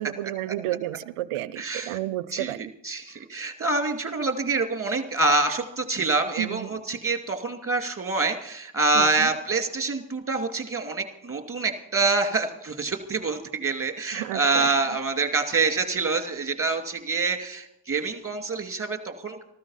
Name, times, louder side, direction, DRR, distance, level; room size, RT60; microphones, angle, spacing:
voice 1, 0.0-2.7 6.4-6.8 8.9-9.3 14.1-14.7, right 15 dB, 90° right, 0.6 m, -31 dB
voice 2, 1.6-2.0 2.3-19.4, right 3 dB, 25° right, 2.5 m, -26 dB
14.0 x 13.0 x 5.7 m
supercardioid pair, 55°, 50 cm